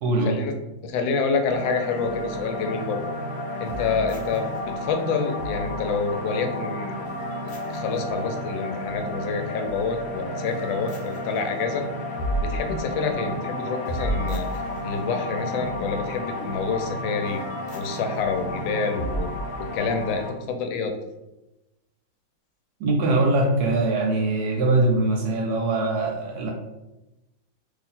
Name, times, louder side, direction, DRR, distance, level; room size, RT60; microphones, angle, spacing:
voice 1, 0.0-0.4 22.8-26.5, right 2 dB, 70° right, 0 dB, 1.0 m, -22 dB
voice 2, 0.8-3.0 3.6-7.0 7.7-11.9 12.4-14.5 14.8-17.4 17.7-19.3 19.6-20.9, left 5 dB, 80° left, 6 dB, 1.3 m, -27 dB
sound 1, 1.5-20.3, equal, 65° left, 0.6 m, -31 dB
2.8 x 2.6 x 4.2 m, 0.98 s
omnidirectional pair, 2.0 m